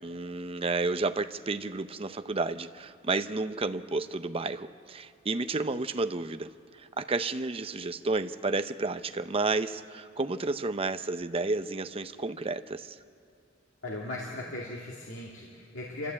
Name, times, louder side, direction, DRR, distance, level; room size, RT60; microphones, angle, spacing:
voice 1, 0.0-13.0, right 3 dB, 30° right, 10 dB, 0.6 m, -31 dB
voice 2, 13.8-16.1, left 2 dB, 75° left, -4 dB, 2.6 m, -38 dB
27.0 x 14.0 x 8.5 m, 2.7 s
head